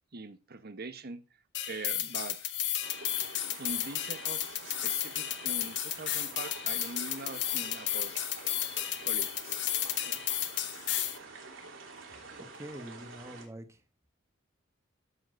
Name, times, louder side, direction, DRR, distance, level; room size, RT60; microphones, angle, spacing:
voice 1, 0.1-1.2 1.7-2.5 3.6-8.1 9.0-9.6 10.0-10.5, right 3 dB, 50° right, 12 dB, 1.0 m, -43 dB
sound 1, 1.5-11.2, left 12 dB, 65° left, 1.3 m, -33 dB
sound 2, 2.8-13.5, right 3 dB, 80° right, 3.1 m, -48 dB
voice 2, 12.5-13.8, equal, 15° right, 7 dB, 1.3 m, -44 dB
13.0 x 7.1 x 2.6 m, 0.30 s
head